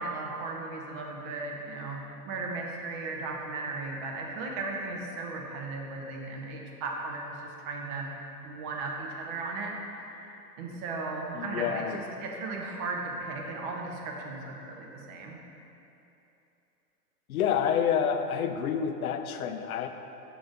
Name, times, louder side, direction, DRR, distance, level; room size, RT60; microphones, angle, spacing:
voice 1, 0.0-9.7 10.1-15.4, right 3 dB, 30° right, 0 dB, 0.8 m, -36 dB
voice 2, 11.3-12.0 17.3-19.9, left 8 dB, 65° left, 7 dB, 0.6 m, -28 dB
6.9 x 3.4 x 5.3 m, 2.9 s
hypercardioid pair, 115°, 48 cm